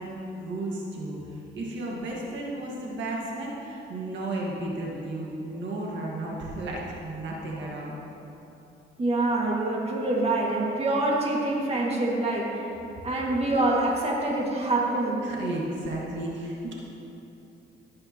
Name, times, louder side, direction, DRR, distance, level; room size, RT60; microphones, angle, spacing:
voice 1, 0.0-8.0 15.2-16.7, right 2 dB, 70° right, -3 dB, 1.8 m, -33 dB
voice 2, 9.0-12.5 13.0-15.2, right 2 dB, 30° right, -3 dB, 2.1 m, -25 dB
15.5 x 8.7 x 3.0 m, 3.0 s
cardioid pair, 90°, 20 cm